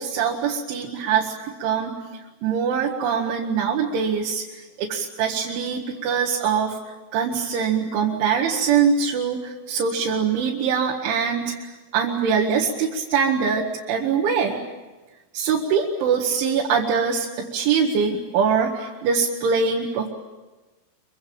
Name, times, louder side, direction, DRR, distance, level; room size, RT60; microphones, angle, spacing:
voice 1, 0.0-1.3 1.6-2.0 2.4-4.4 4.8-6.7 7.1-11.5 11.9-14.6 15.3-20.1, right 6 dB, 85° right, -2 dB, 4.4 m, -23 dB
26.0 x 24.0 x 8.8 m, 1.2 s
omnidirectional pair, 5.3 m